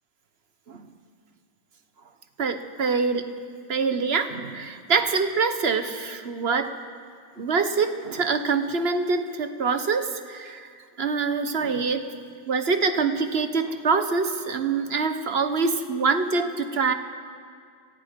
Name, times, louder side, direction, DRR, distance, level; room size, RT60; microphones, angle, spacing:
voice 1, 2.4-3.3 3.7-6.8 7.4-10.7 11.0-12.1 12.5-16.9, right 4 dB, 40° right, 8 dB, 1.2 m, -25 dB
29.5 x 23.0 x 5.3 m, 2.1 s
omnidirectional pair, 2.0 m